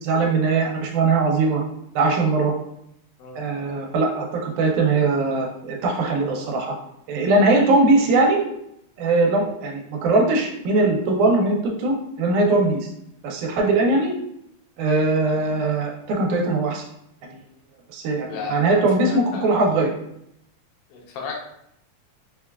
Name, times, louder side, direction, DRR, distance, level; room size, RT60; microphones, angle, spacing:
voice 1, 0.0-1.6 2.0-2.5 3.4-6.8 7.1-8.4 9.0-12.9 13.2-14.1 14.8-16.8 17.3-17.4 17.9-19.9, right 3 dB, 85° right, 0 dB, 2.1 m, -20 dB
voice 2, 18.3-18.8 19.1-19.6 20.9-21.4, left 5 dB, 80° left, -1 dB, 2.2 m, -34 dB
5.3 x 2.2 x 2.2 m, 0.76 s
omnidirectional pair, 3.6 m